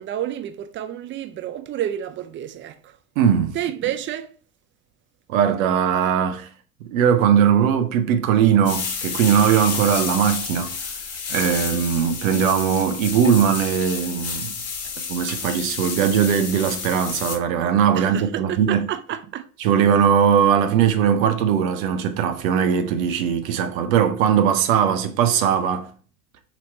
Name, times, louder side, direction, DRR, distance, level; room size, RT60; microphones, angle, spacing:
voice 1, 0.0-3.0 3.5-4.3 17.9-19.4, right 11 dB, 30° right, 0.5 m, -30 dB
voice 2, 3.2-3.5 5.3-6.5 6.9-10.7 11.3-14.5 15.1-18.8 19.6-25.9, right 8 dB, 70° right, 0.8 m, -19 dB
sound 1, 8.6-17.4, left 5 dB, 35° left, 1.3 m, -30 dB
3.0 x 3.0 x 4.2 m
hypercardioid pair, 75°, 42 cm